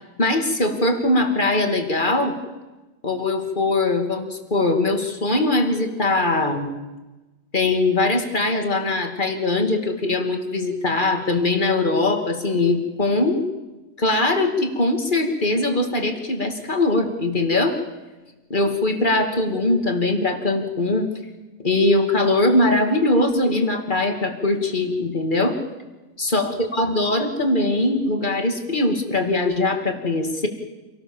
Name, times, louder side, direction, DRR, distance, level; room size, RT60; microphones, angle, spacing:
voice 1, 0.2-2.4 3.0-6.7 7.5-13.4 14.0-17.8 18.5-21.1 21.6-25.6 26.2-30.5, left 2 dB, 35° left, 5 dB, 2.9 m, -21 dB
27.5 x 18.5 x 7.4 m, 1.1 s
omnidirectional pair, 1.4 m